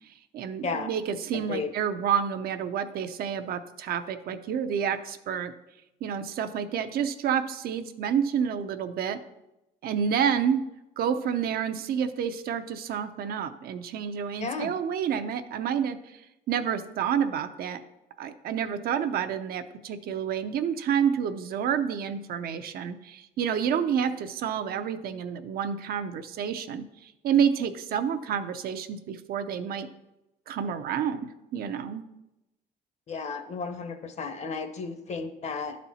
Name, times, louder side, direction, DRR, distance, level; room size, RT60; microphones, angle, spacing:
voice 1, 0.3-5.5 6.0-9.2 9.8-10.6 11.0-16.0 16.5-17.8 18.2-29.9 30.5-31.2 31.5-32.0, right 8 dB, 65° right, 8 dB, 0.6 m, -29 dB
voice 2, 14.4-14.7 33.1-35.8, left 4 dB, 40° left, 9 dB, 0.9 m, -33 dB
11.0 x 4.3 x 4.1 m, 0.91 s
cardioid pair, 110°, 17 cm